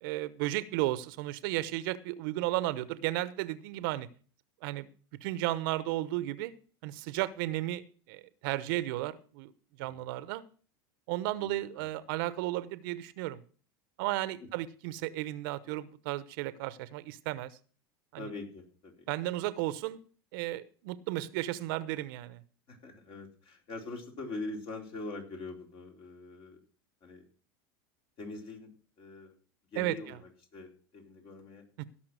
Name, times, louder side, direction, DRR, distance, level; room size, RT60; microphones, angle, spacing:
voice 1, 0.0-4.1 4.6-4.9 5.2-6.5 6.8-9.5 9.8-10.4 11.1-13.4 14.0-17.6 18.1-18.3 19.1-20.0 20.3-22.4 29.8-30.2 31.8-31.9, right 16 dB, 65° right, 16 dB, 0.9 m, -34 dB
voice 2, 11.4-11.9 18.2-19.1 22.7-26.6 27.0-27.2 28.2-28.7 29.0-29.3 29.7-31.6, left 3 dB, 45° left, 2 dB, 4.2 m, -43 dB
17.0 x 6.0 x 6.2 m, 0.40 s
hypercardioid pair, 105°, 12 cm